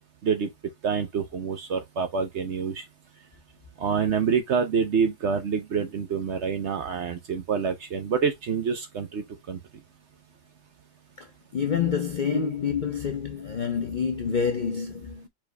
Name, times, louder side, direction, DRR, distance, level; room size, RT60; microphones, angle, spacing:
voice 1, 0.8-2.8 3.8-9.6, right 6 dB, 55° right, 0.9 m, -27 dB
voice 2, 11.2-15.3, left 6 dB, 65° left, 0.4 m, -28 dB
4.9 x 4.4 x 2.2 m
omnidirectional pair, 1.7 m